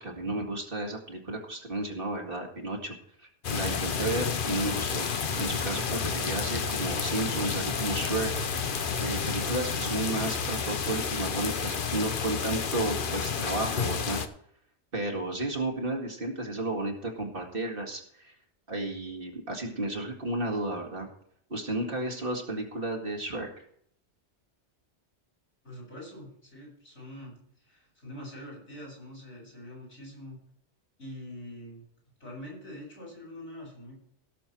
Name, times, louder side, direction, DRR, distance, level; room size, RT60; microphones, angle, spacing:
voice 1, 0.0-5.1 5.4-8.3 9.0-14.2 14.9-18.4 18.7-21.1 21.5-23.6, right 2 dB, 55° right, 1 dB, 2.3 m, -33 dB
sound 1, 3.4-14.3, left 6 dB, 50° left, 1.0 m, -31 dB
sound 2, 5.3-10.6, right 6 dB, 30° right, 2.1 m, -42 dB
voice 2, 25.6-30.4 31.0-31.9 32.2-34.0, left 1 dB, 80° left, -3 dB, 6.6 m, -44 dB
17.5 x 7.0 x 4.4 m, 0.66 s
omnidirectional pair, 1.1 m